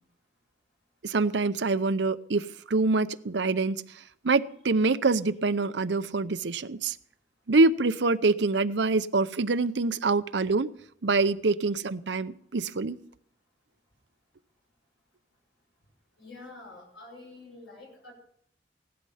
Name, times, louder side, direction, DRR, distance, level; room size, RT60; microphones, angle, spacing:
voice 1, 1.0-3.8 4.2-7.0 7.5-10.7 11.0-13.0, right 3 dB, 75° right, 14 dB, 0.7 m, -25 dB
voice 2, 16.2-18.1, left 2 dB, 80° left, -2 dB, 6.1 m, -47 dB
17.0 x 11.5 x 5.6 m, 0.65 s
head